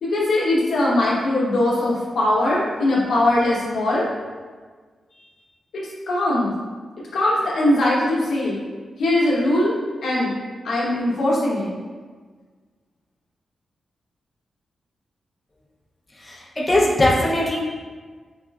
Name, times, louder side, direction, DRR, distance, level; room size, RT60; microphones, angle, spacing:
voice 1, 0.0-4.1 5.7-6.5 7.1-8.6 9.0-10.3 10.6-11.7, left 1 dB, 85° left, -6 dB, 0.9 m, -21 dB
voice 2, 16.2-17.6, left 1 dB, 25° left, -5 dB, 0.7 m, -20 dB
5.0 x 2.4 x 2.2 m, 1.5 s
wide cardioid pair, 105°, 0 cm